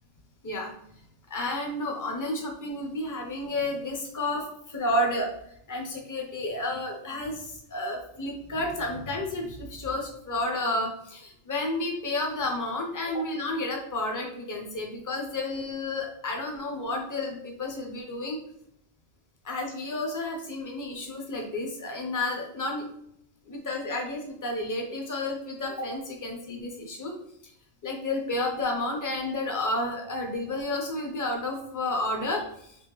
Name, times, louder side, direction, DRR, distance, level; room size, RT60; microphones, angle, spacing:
voice 1, 1.3-5.3 5.7-18.4 19.4-22.9 23.5-27.1 27.8-32.8, left 2 dB, 25° left, 1 dB, 0.5 m, -31 dB
3.4 x 2.6 x 3.0 m, 0.71 s
omnidirectional pair, 1.2 m